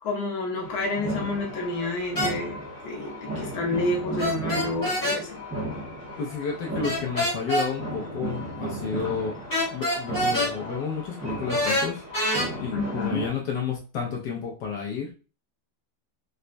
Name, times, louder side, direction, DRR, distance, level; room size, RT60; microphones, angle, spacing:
voice 1, 0.0-5.4 12.7-13.2, left 2 dB, 65° left, -1 dB, 1.4 m, -29 dB
sound 1, 0.6-13.3, right 1 dB, 15° right, 0.5 m, -35 dB
sound 2, 2.1-2.3 4.2-5.2 6.8-7.7 9.5-10.5 11.5-12.5, equal, 15° left, 0.8 m, -25 dB
voice 2, 6.2-9.3 9.7-12.0 12.6-15.1, left 6 dB, 80° left, -1 dB, 1.3 m, -31 dB
4.1 x 2.2 x 2.5 m, 0.35 s
omnidirectional pair, 1.8 m